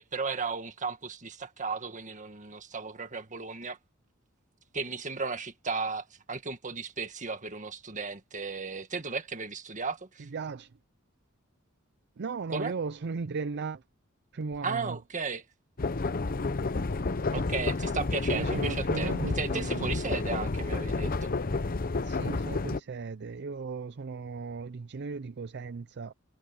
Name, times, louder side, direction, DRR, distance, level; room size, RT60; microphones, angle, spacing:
voice 1, 0.0-3.8 4.7-10.3 12.5-12.7 14.6-15.4 17.3-21.3, right 4 dB, 40° right, 1.8 m, -35 dB
voice 2, 10.2-10.7 12.2-13.8 14.3-15.0 18.3-20.0 22.0-26.1, right 4 dB, 55° right, 0.5 m, -36 dB
sound 1, 15.8-22.8, left 3 dB, 45° left, 0.8 m, -30 dB
head